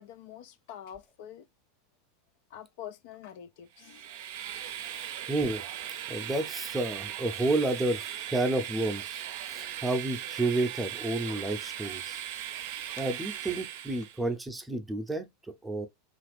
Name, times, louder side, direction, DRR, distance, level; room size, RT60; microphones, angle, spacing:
voice 1, 0.0-1.5 2.5-4.1, left 10 dB, 65° left, 0.4 m, -46 dB
Train, 3.8-14.2, right 11 dB, 65° right, 0.5 m, -38 dB
voice 2, 5.3-5.6 6.1-12.2 13.0-15.3 15.6-15.9, right 2 dB, 10° right, 0.6 m, -30 dB
2.8 x 2.5 x 3.3 m
hypercardioid pair, 105°, 0 cm